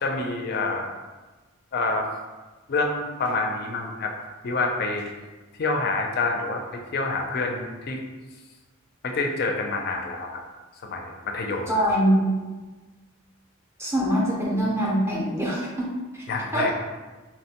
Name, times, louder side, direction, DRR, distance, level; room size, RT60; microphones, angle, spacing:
voice 1, 0.0-0.9 1.7-2.1 2.7-4.1 4.4-5.1 5.6-8.0 9.0-10.4 10.8-11.7 16.3-16.7, left 3 dB, 45° left, 2 dB, 0.4 m, -27 dB
voice 2, 11.7-12.3 13.8-16.2 16.5-16.7, equal, 10° right, -4 dB, 0.5 m, -23 dB
2.9 x 2.1 x 2.8 m, 1.2 s
head